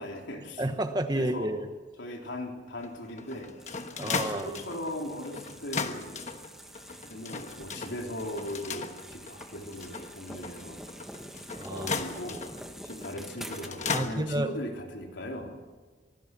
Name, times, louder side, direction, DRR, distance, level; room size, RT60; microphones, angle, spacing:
voice 1, 0.0-0.6 1.1-1.5 2.0-3.5 4.0-6.2 7.1-10.8 11.7-12.4 12.8-15.5, left 1 dB, 75° left, 2 dB, 3.9 m, -38 dB
voice 2, 0.6-1.7 3.9-4.6 11.6-12.0 13.9-14.5, right 1 dB, 20° right, 8 dB, 1.1 m, -31 dB
sound 1, 2.8-14.1, left 4 dB, 40° left, 1.3 m, -37 dB
sound 2, 3.6-14.0, equal, ahead, 1.5 m, -46 dB
25.5 x 19.5 x 6.1 m, 1.3 s
head